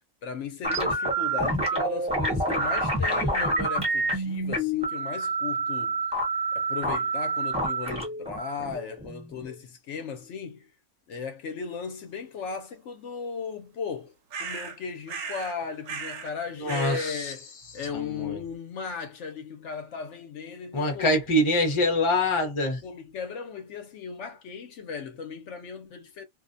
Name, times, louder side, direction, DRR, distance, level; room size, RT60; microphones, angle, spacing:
voice 1, 0.2-6.0 6.5-10.7 11.1-14.1 14.4-21.2 22.8-26.2, left 5 dB, 70° left, 0.9 m, -36 dB
sound 1, 0.6-9.6, right 2 dB, 5° right, 1.0 m, -28 dB
sound 2, 14.3-14.8 15.1-15.6 15.8-16.3 16.7-17.1, right 5 dB, 80° right, 1.0 m, -36 dB
voice 2, 16.6-17.3 17.9-18.4 20.7-22.8, left 1 dB, 30° left, 0.7 m, -25 dB
2.5 x 2.1 x 2.5 m
omnidirectional pair, 1.3 m